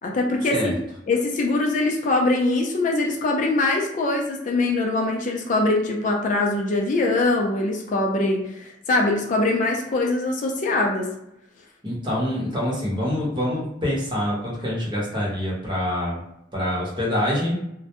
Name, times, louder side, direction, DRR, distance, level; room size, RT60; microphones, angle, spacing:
voice 1, 0.0-0.7 1.1-11.1, left 2 dB, 45° left, 1 dB, 0.4 m, -22 dB
voice 2, 11.8-16.2 16.5-17.6, equal, 25° right, -5 dB, 0.8 m, -25 dB
2.1 x 2.0 x 2.8 m, 0.80 s
head